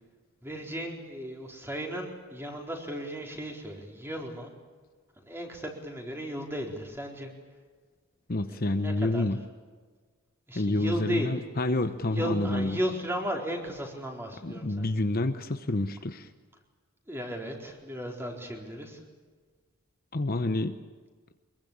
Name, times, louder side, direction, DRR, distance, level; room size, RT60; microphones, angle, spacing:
voice 1, 0.4-4.5 5.2-7.3 8.5-9.3 10.5-11.4 12.1-14.9 17.1-19.0, equal, 10° right, 1 dB, 4.1 m, -35 dB
voice 2, 8.3-9.4 10.5-12.8 14.4-16.3 20.1-20.8, left 2 dB, 40° left, 8 dB, 0.9 m, -28 dB
24.5 x 22.5 x 8.8 m, 1.4 s
head